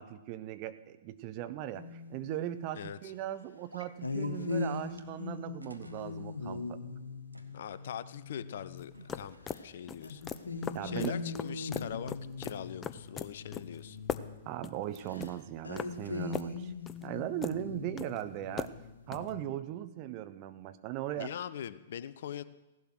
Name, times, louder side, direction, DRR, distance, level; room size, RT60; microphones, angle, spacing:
voice 1, 0.0-6.8 10.7-11.2 14.4-16.7 17.0-18.7 19.1-21.3, right 13 dB, 35° right, 11 dB, 1.0 m, -38 dB
sound 1, 1.7-2.7 4.0-9.0 9.5-9.7 10.0-14.8 15.1-15.3 15.6-19.4, left 4 dB, 80° left, 1.9 m, -40 dB
voice 2, 2.8-3.1 7.5-9.4 9.6-10.2 10.8-14.0 21.2-22.4, left 9 dB, 55° left, 15 dB, 0.7 m, -42 dB
sound 2, 3.7-3.9 4.2-4.3 5.0-5.1 5.6-6.1 7.3-7.8 8.9-9.7, right 1 dB, 90° right, 1.1 m, -53 dB
sound 3, 8.8-19.3, left 7 dB, 20° left, 0.6 m, -41 dB
16.5 x 11.5 x 6.3 m, 1.0 s
figure-of-eight pair, 110°, 0 cm